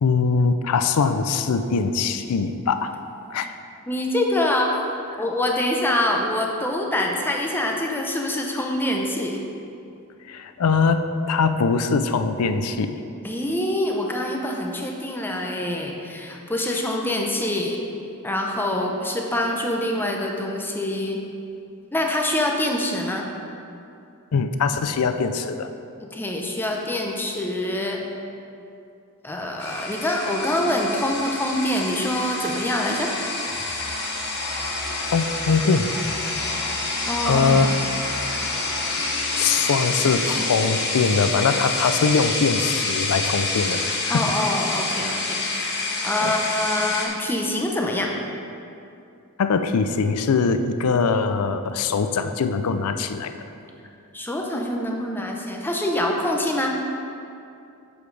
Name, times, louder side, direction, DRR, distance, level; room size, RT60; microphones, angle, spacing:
voice 1, 0.0-2.9 3.3-3.5 5.1-5.2 10.3-13.0 24.3-25.7 35.1-35.9 37.2-37.8 39.3-44.3 46.2-46.3 49.4-53.3, left 5 dB, 75° left, 9 dB, 0.4 m, -22 dB
voice 2, 3.9-4.8 5.2-9.4 13.2-17.8 18.2-21.2 21.9-23.3 26.1-28.0 29.2-33.1 37.1-37.7 40.4-40.5 44.1-48.1 54.1-56.7, left 1 dB, 10° left, 0 dB, 0.7 m, -25 dB
sound 1, 29.6-47.1, left 3 dB, 50° left, 1.2 m, -27 dB
Musical instrument, 33.5-39.0, equal, 85° right, 1.3 m, -42 dB
8.4 x 7.1 x 3.3 m, 2.6 s
head